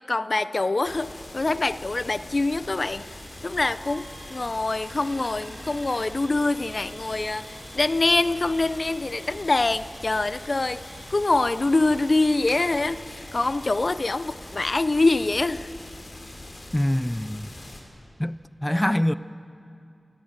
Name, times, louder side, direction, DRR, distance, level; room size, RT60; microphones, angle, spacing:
voice 1, 0.1-3.1 3.4-10.8 11.1-15.7, left 2 dB, 55° left, 0.6 m, -24 dB
sound 1, 0.7-16.4, right 2 dB, 85° right, 6.5 m, -49 dB
sound 2, 0.8-17.8, left 1 dB, 70° left, 4.6 m, -43 dB
voice 2, 16.7-17.5 18.2-19.1, left 1 dB, 10° left, 0.5 m, -24 dB
26.5 x 22.0 x 7.5 m
wide cardioid pair, 60°, 0 cm